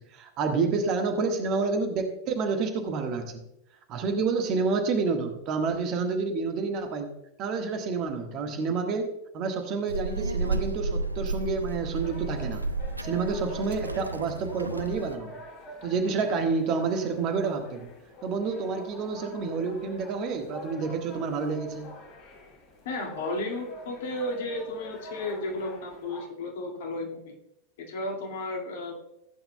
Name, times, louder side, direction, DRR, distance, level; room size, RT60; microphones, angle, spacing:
voice 1, 0.1-3.4 3.9-7.1 7.4-12.6 13.0-15.4 15.8-17.9 18.2-21.9, right 4 dB, 35° right, 5 dB, 1.4 m, -29 dB
Child speech kid speaking, 9.9-15.2, right 3 dB, 85° right, 0.5 m, -32 dB
sound 1, 12.0-26.2, equal, 40° left, 2.7 m, -46 dB
voice 2, 22.9-27.4 27.9-29.0, left 2 dB, 55° left, 1 dB, 2.0 m, -33 dB
16.0 x 8.7 x 2.2 m, 0.82 s
figure-of-eight pair, 90°, 0 cm